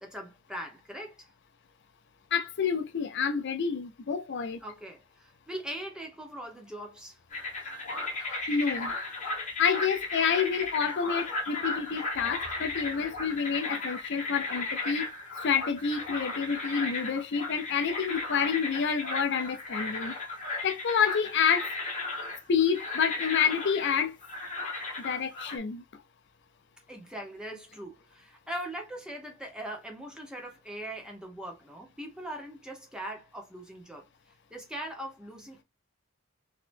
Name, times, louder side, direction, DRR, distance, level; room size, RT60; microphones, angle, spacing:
voice 1, 0.0-1.3 4.6-7.2 26.9-34.0 34.5-35.6, right 1 dB, 5° right, 1.1 m, -41 dB
voice 2, 2.3-4.6 8.5-8.9 9.6-15.1 15.4-20.1 20.6-21.7 22.5-24.2 25.0-25.8, left 6 dB, 55° left, 0.5 m, -28 dB
sound 1, 7.3-25.6, left 3 dB, 35° left, 1.6 m, -35 dB
4.0 x 2.8 x 2.6 m
head